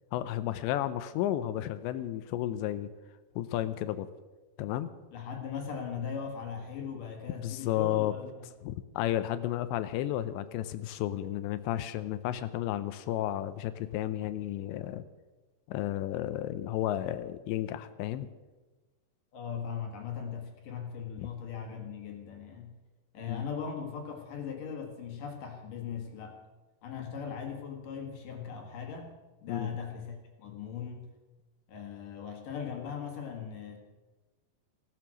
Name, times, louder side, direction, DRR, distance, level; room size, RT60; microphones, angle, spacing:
voice 1, 0.1-2.9 3.4-4.1 4.6-4.9 7.4-8.1 8.6-15.0 15.7-18.3 23.3-23.4 29.5-29.7, left 13 dB, 85° left, 12 dB, 2.9 m, -32 dB
voice 2, 5.1-8.5 19.3-22.7 23.1-26.4 26.8-29.2 29.4-31.1 31.7-33.8, left 7 dB, 55° left, 3 dB, 2.9 m, -39 dB
16.5 x 12.5 x 6.2 m, 1.2 s
omnidirectional pair, 5.1 m